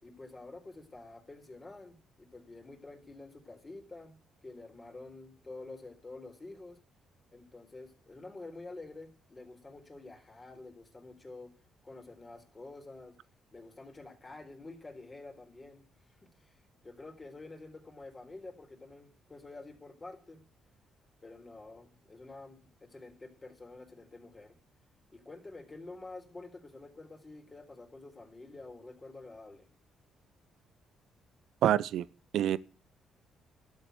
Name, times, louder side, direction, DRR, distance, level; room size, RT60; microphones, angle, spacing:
voice 1, 0.0-6.8 7.3-11.5 11.8-13.2 13.5-15.8 16.2-20.4 21.2-24.6 25.1-29.7, left 2 dB, 25° left, 3.8 m, -49 dB
voice 2, 31.6-32.0 32.3-32.6, right 11 dB, 75° right, 0.6 m, -26 dB
12.0 x 7.4 x 7.9 m
cardioid pair, 90°, 0 cm